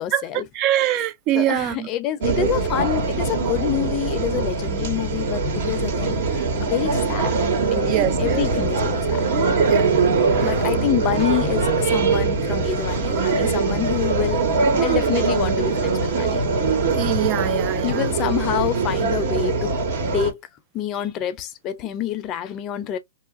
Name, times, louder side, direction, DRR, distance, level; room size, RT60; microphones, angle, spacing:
voice 1, 0.0-0.4 1.3-7.3 7.7-9.2 10.4-16.4 17.8-19.8 20.1-20.4 20.7-23.0, left 11 dB, 30° left, 0.4 m, -27 dB
voice 2, 0.6-1.9 7.9-8.4 9.7-10.6 16.9-18.1, right 13 dB, 35° right, 0.3 m, -24 dB
sound 1, 2.2-20.3, right 4 dB, 60° right, 1.3 m, -22 dB
2.9 x 2.3 x 2.4 m
hypercardioid pair, 140°, 0 cm